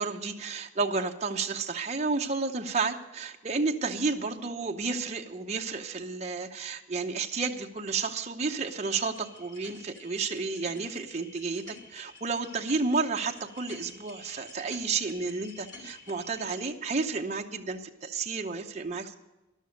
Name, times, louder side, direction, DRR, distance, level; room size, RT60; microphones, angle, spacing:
voice 1, 0.0-19.1, right 4 dB, 35° right, 3 dB, 0.8 m, -31 dB
sound 1, 8.8-16.7, left 3 dB, 70° left, 2.6 m, -50 dB
13.5 x 11.5 x 5.2 m, 1.0 s
head